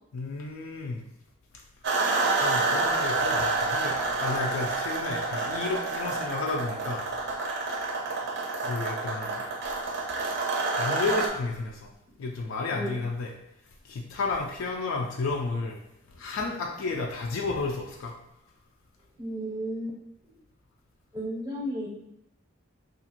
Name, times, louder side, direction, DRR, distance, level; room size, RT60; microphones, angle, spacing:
voice 1, 0.1-1.1 2.4-7.0 8.6-9.4 10.8-11.9 12.2-13.3 13.8-15.8 16.2-18.1, left 3 dB, 65° left, 1 dB, 0.3 m, -32 dB
sound 1, 1.8-11.3, right 3 dB, 55° right, 0.5 m, -28 dB
voice 2, 19.2-19.9 20.2-20.3 21.1-21.9, equal, 15° right, -3 dB, 0.6 m, -33 dB
2.8 x 2.4 x 2.8 m, 0.82 s
head